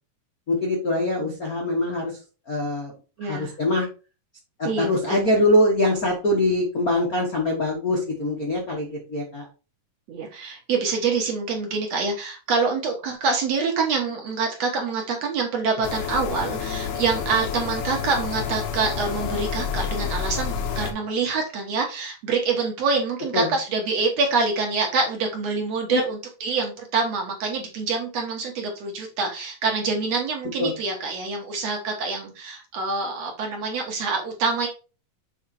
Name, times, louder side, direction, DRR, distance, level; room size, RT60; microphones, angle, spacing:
voice 1, 0.5-2.2 2.5-2.9 3.2-3.9 4.6-9.5 23.3-23.5 25.9-26.0 30.6-30.7, left 1 dB, 50° left, -1 dB, 1.1 m, -23 dB
voice 2, 3.2-3.5 4.6-5.2 10.1-34.7, right 4 dB, 60° right, 2 dB, 2.4 m, -26 dB
sound 1, 15.8-20.9, left 7 dB, 65° left, 2.0 m, -29 dB
7.2 x 4.1 x 4.2 m, 0.33 s
omnidirectional pair, 3.8 m